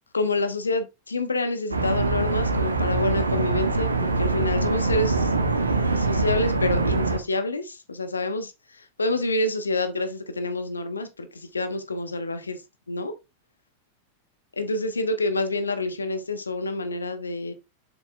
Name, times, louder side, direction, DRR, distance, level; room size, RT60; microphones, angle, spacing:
voice 1, 0.1-5.3 5.7-12.6 12.9-13.1 14.6-17.5, left 2 dB, 75° left, 0.9 m, -28 dB
sound 1, 1.7-7.2, right 3 dB, 80° right, 1.0 m, -24 dB
7.1 x 7.0 x 2.2 m
figure-of-eight pair, 90°, 0 cm